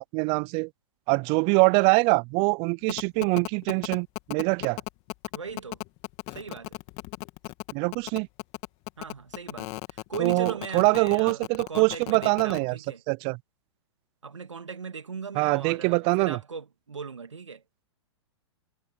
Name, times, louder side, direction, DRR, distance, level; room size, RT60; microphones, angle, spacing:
voice 1, 0.1-0.7 1.1-4.8 7.7-8.3 10.2-12.8 13.1-13.4 15.4-16.4, right 32 dB, 40° right, 0.6 m, -24 dB
sound 1, 2.9-12.6, left 25 dB, 40° left, 2.3 m, -35 dB
voice 2, 5.3-5.8 6.3-6.8 9.0-13.0 14.2-17.6, right 5 dB, 85° right, 2.8 m, -38 dB
hypercardioid pair, 110°, 15 cm